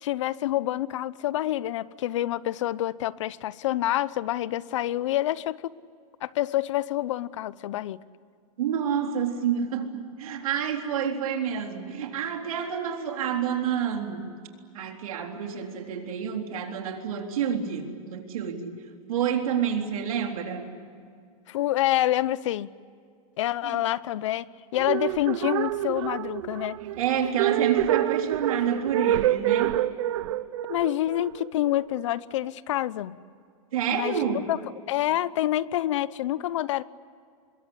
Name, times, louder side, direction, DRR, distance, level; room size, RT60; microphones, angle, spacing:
voice 1, 0.0-5.7 6.2-8.0 21.5-22.7 23.4-24.5 24.7-26.8 30.7-33.2 33.9-34.6 34.9-36.8, left 14 dB, 55° left, 19 dB, 0.8 m, -27 dB
voice 2, 8.6-14.3 14.7-18.8 19.1-20.7 23.6-23.8 26.8-29.8 33.7-34.5, right 8 dB, 70° right, 3 dB, 3.8 m, -28 dB
sound 1, 24.8-32.0, right 14 dB, 50° right, 0.8 m, -27 dB
25.0 x 22.5 x 9.9 m, 2.2 s
supercardioid pair, 170°, 19 cm